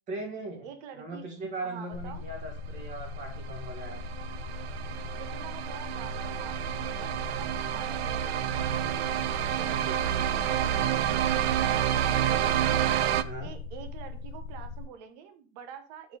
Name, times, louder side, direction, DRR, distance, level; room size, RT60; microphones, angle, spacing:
voice 1, 0.1-0.7 0.9-4.0 9.5-10.9 13.2-13.5, right 2 dB, 20° right, 1 dB, 1.8 m, -39 dB
voice 2, 0.6-1.2 1.6-2.2 5.1-8.8 11.6-12.6 13.4-16.2, right 8 dB, 40° right, 8 dB, 0.9 m, -46 dB
sound 1, 1.9-14.9, left 3 dB, 80° left, 0.6 m, -40 dB
sound 2, 3.3-13.2, right 10 dB, 65° right, 0.6 m, -29 dB
6.7 x 4.2 x 4.7 m, 0.38 s
supercardioid pair, 170°, 34 cm